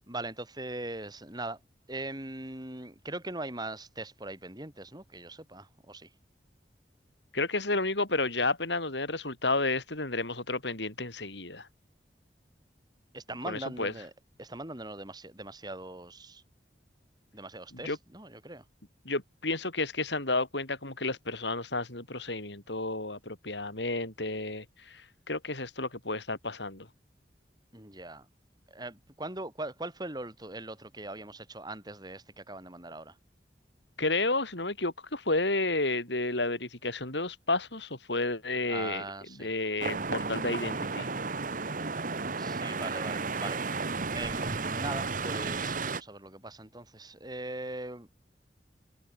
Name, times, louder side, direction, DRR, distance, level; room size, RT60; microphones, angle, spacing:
voice 1, 0.0-1.6 1.9-6.1 13.1-14.1 14.4-16.4 17.3-18.6 27.7-28.3 28.7-33.2 38.6-39.5 42.4-48.1, right 2 dB, 25° right, 6.2 m, -41 dB
voice 2, 7.3-11.7 13.5-13.9 17.7-18.0 19.1-26.9 34.0-39.0 39.4-41.1, left 2 dB, 80° left, 7.0 m, -31 dB
sound 1, 39.8-46.0, right 4 dB, 50° right, 1.4 m, -33 dB
head